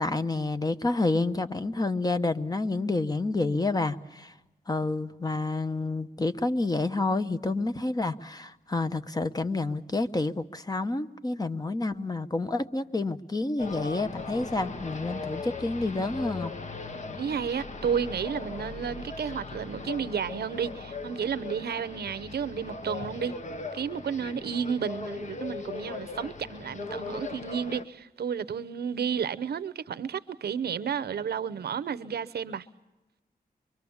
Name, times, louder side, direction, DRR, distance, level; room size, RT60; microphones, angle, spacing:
voice 1, 0.0-4.3 4.7-16.5, left 2 dB, 25° left, 0.9 m, -29 dB
sound 1, 13.6-27.8, left 4 dB, 45° left, 1.2 m, -39 dB
voice 2, 17.2-23.3 23.7-32.7, right 7 dB, 80° right, 0.8 m, -32 dB
24.5 x 24.0 x 7.1 m
wide cardioid pair, 90°, 16 cm